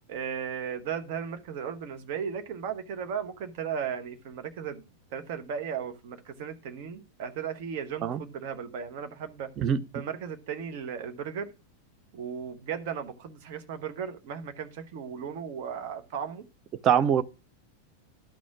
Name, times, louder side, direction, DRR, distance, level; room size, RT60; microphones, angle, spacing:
voice 1, 0.1-4.8 5.1-9.5 9.9-11.5 12.1-16.4, right 7 dB, 50° right, 1.1 m, -36 dB
voice 2, 16.8-17.2, right 8 dB, 30° right, 0.6 m, -23 dB
12.0 x 4.2 x 5.9 m
figure-of-eight pair, 90°, 0 cm